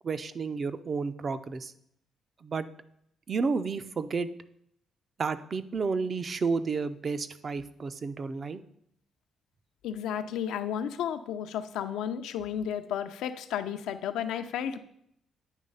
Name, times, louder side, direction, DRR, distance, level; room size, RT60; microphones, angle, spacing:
voice 1, 0.0-1.7 2.4-2.7 3.3-4.3 5.2-8.6, right 4 dB, 40° right, 12 dB, 0.5 m, -31 dB
voice 2, 9.8-14.8, left 9 dB, 85° left, 9 dB, 0.5 m, -33 dB
9.2 x 3.2 x 5.4 m, 0.71 s
cardioid pair, 90°, 0 cm